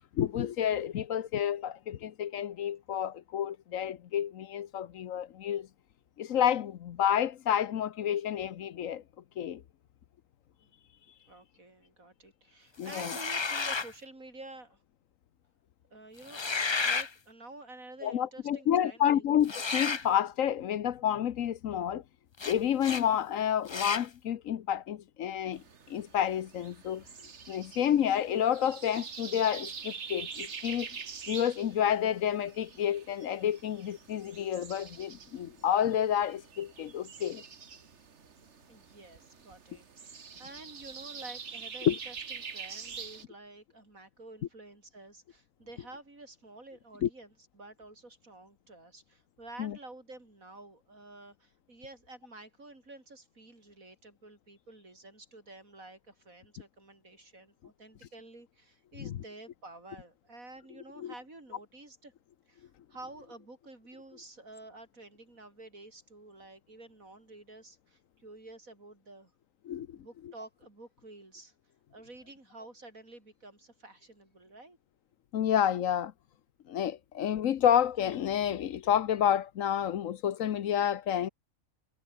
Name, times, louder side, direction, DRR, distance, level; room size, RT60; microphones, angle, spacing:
voice 1, 0.1-5.7 6.2-9.0 9.4-9.6 12.8-13.2 18.0-22.0 22.4-27.0 27.5-30.9 31.3-37.4 41.9-42.0 47.0-47.1 49.6-49.8 59.0-59.2 61.0-61.1 69.7-70.0 75.3-76.1 76.7-81.3, left 10 dB, 70° left, 1.2 m, -29 dB
voice 2, 11.3-14.8 15.9-16.4 16.8-19.2 38.7-62.1 62.5-69.3 70.0-71.5 71.9-74.8, right 2 dB, 70° right, 6.1 m, -50 dB
sound 1, 12.8-13.9 16.2-17.1 19.4-20.1 22.4-22.5 22.8-23.0 23.7-24.1, left 4 dB, 30° left, 0.5 m, -32 dB
sound 2, 25.5-43.3, right 6 dB, 55° right, 1.7 m, -45 dB
omnidirectional pair, 1.5 m